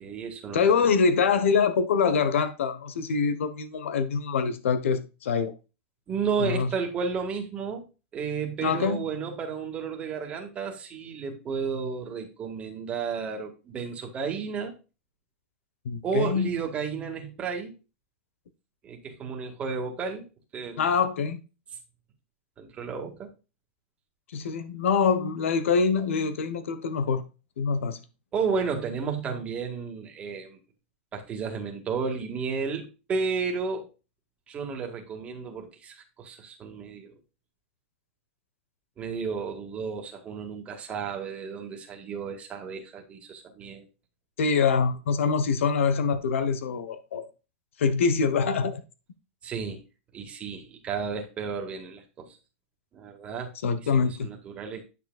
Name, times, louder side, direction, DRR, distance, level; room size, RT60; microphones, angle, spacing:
voice 1, 0.0-0.9 6.1-7.8 8.1-14.7 16.0-17.7 18.8-20.3 20.5-20.9 22.6-23.3 28.3-30.6 31.1-33.9 34.5-37.1 39.0-43.8 49.4-49.8 50.1-52.4 52.9-53.5 53.8-54.8, right 5 dB, 20° right, 1.8 m, -32 dB
voice 2, 0.5-5.5 6.4-6.7 8.6-9.0 15.8-16.5 20.8-21.4 24.3-27.2 27.6-28.0 44.4-47.2 47.8-48.8 53.6-54.3, left 5 dB, 85° left, 1.2 m, -24 dB
9.3 x 6.8 x 2.4 m
supercardioid pair, 160°, 7 cm